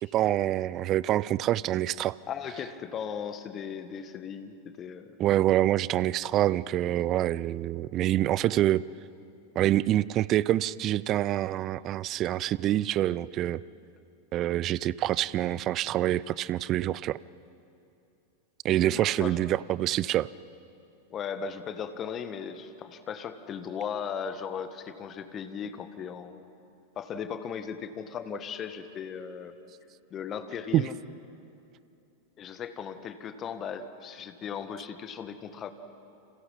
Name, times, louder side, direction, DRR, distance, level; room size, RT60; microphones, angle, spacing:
voice 1, 0.0-2.2 5.2-8.8 9.6-13.6 14.3-17.2 18.6-20.3 30.7-30.8, right 13 dB, 35° right, 21 dB, 0.5 m, -26 dB
voice 2, 2.3-5.2 18.8-19.4 21.1-26.5 26.9-29.5 30.1-30.9 32.4-35.7, left 7 dB, 30° left, 10 dB, 1.6 m, -37 dB
30.0 x 27.5 x 5.6 m, 2.8 s
figure-of-eight pair, 90°, 0 cm